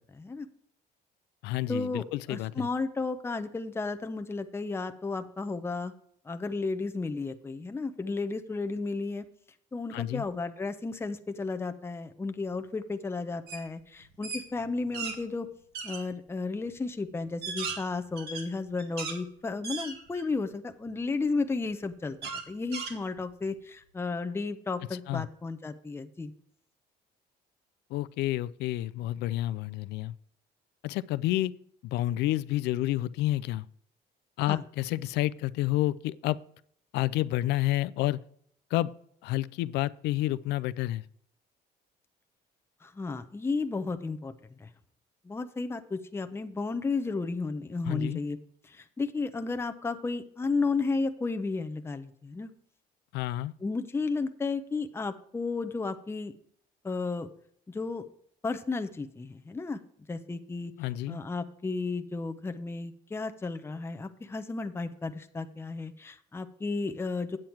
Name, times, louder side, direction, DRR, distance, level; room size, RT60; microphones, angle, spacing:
voice 1, 0.1-0.5 1.7-6.0 6.2-9.2 9.7-15.5 15.8-26.3 34.5-34.6 42.8-44.7 45.2-48.4 48.7-52.5 53.6-56.3 56.8-57.3 57.7-58.0 58.4-59.8 60.1-60.7 61.1-67.4, left 3 dB, 15° left, 0.7 m, -33 dB
voice 2, 1.4-2.7 9.9-10.3 25.1-25.3 27.9-30.1 30.8-31.5 31.8-33.7 34.4-36.4 36.9-38.2 38.7-38.9 39.2-41.0 47.8-48.2 53.1-53.5 60.8-61.2, left 15 dB, 85° left, 0.4 m, -29 dB
sound 1, 13.5-13.7 14.0-15.2 15.7-16.0 16.7-16.8 17.2-19.2 19.6-20.4 20.9-21.0 22.2-23.5, right 5 dB, 70° right, 2.0 m, -37 dB
8.8 x 7.7 x 4.5 m
cardioid pair, 110°, 17 cm